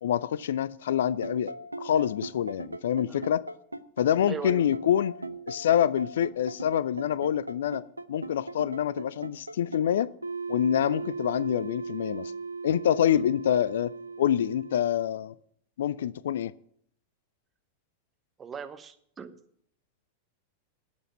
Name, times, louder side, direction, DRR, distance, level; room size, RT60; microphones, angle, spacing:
voice 1, 0.0-3.4 4.0-5.1 5.5-7.8 8.1-10.1 10.5-12.3 12.6-13.9 14.2-15.3 15.8-16.5, left 10 dB, 60° left, 20 dB, 0.4 m, -26 dB
sound 1, 1.1-15.1, right 3 dB, 85° right, 0.7 m, -37 dB
voice 2, 4.3-4.6 13.1-13.2 18.4-19.4, right 6 dB, 20° right, 9 dB, 1.1 m, -39 dB
11.5 x 8.0 x 7.1 m, 0.65 s
figure-of-eight pair, 90°, 0 cm